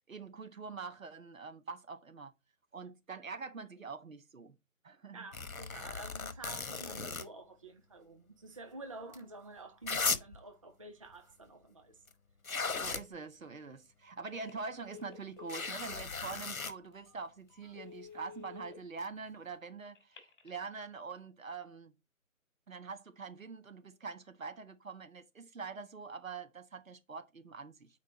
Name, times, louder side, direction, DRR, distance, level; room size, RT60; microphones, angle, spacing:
voice 1, 0.1-2.3 2.7-4.5 4.8-5.3 12.8-21.9 22.7-28.0, right 4 dB, 70° right, 1.4 m, -44 dB
voice 2, 5.1-12.0, right 3 dB, 25° right, 0.6 m, -49 dB
sound 1, 5.3-7.2 9.1-9.2 9.8-10.4 12.1-12.2 12.4-13.0 15.5-16.7 19.0-19.1, left 4 dB, 75° left, 1.2 m, -36 dB
Telephone, 14.3-14.6 14.9-16.0 16.5-16.6 17.1-17.2 17.6-18.7 19.9-20.6, left 7 dB, 40° left, 3.4 m, -51 dB
8.7 x 4.9 x 4.2 m
figure-of-eight pair, 150°, 42 cm